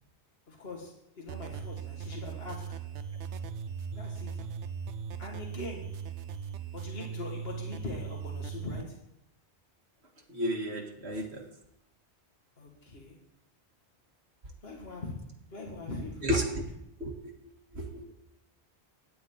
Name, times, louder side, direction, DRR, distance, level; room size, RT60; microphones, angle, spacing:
voice 1, 0.5-2.6 3.9-4.4 5.2-5.8 6.7-9.0 12.6-13.2 14.6-15.1 15.5-16.3, left 2 dB, 60° left, 0 dB, 2.3 m, -41 dB
sound 1, 1.3-8.8, right 6 dB, 90° right, 1.1 m, -39 dB
voice 2, 10.3-11.4 16.2-16.4 17.0-17.3 17.7-18.1, equal, 70° right, 2 dB, 2.0 m, -32 dB
17.0 x 10.5 x 4.0 m, 0.81 s
omnidirectional pair, 1.1 m